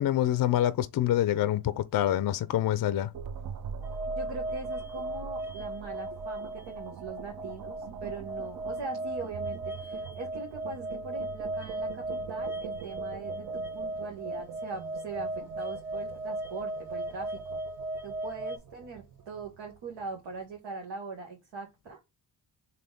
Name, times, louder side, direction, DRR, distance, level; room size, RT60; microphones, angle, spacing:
voice 1, 0.0-3.1, left 12 dB, 50° left, 0.4 m, -26 dB
sound 1, 3.1-20.4, right 6 dB, 50° right, 0.6 m, -44 dB
sound 2, 3.8-18.6, right 1 dB, 5° right, 0.6 m, -37 dB
voice 2, 4.1-7.7 8.0-17.6 18.0-22.0, right 4 dB, 80° right, 1.2 m, -41 dB
3.5 x 2.7 x 3.8 m
cardioid pair, 80°, 43 cm